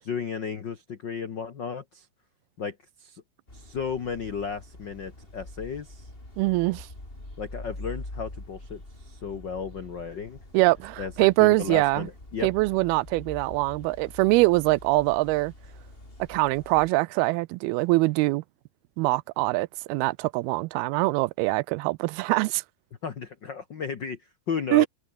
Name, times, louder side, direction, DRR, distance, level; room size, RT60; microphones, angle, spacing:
voice 1, 0.0-2.1 2.6-3.2 3.5-6.1 7.4-10.4 11.0-11.1 11.4-12.5 23.0-24.2 24.5-24.9, left 6 dB, 75° left, 1.0 m, -34 dB
sound 1, 3.5-16.9, left 1 dB, 15° left, 5.9 m, -45 dB
voice 2, 6.4-6.9 10.5-12.1 12.4-15.5 16.3-18.4 19.0-22.6 24.7-24.9, right 22 dB, 85° right, 2.5 m, -23 dB
omnidirectional pair, 4.4 m